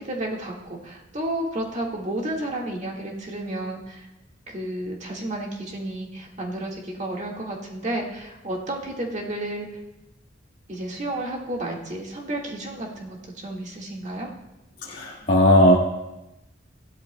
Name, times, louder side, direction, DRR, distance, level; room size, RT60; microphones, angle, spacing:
voice 1, 0.0-4.1 4.5-9.7 10.7-14.3, right 1 dB, 40° right, 0 dB, 1.7 m, -31 dB
voice 2, 14.8-15.8, left 1 dB, 40° left, -4 dB, 1.3 m, -17 dB
16.5 x 12.5 x 2.2 m, 0.95 s
head